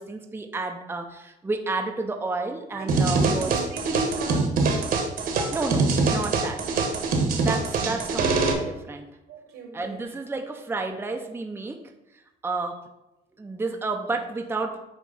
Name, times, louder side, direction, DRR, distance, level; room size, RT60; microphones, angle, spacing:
voice 1, 0.0-3.5 5.5-6.6 7.4-9.1 9.7-11.8 12.4-12.8 13.4-14.8, right 3 dB, 15° right, 3 dB, 0.7 m, -31 dB
voice 2, 2.7-4.8 9.3-10.1, right 2 dB, 80° right, 3 dB, 1.8 m, -36 dB
sound 1, 2.9-8.5, right 4 dB, 60° right, 1.3 m, -24 dB
8.4 x 3.1 x 5.5 m, 0.93 s
cardioid pair, 110°, 17 cm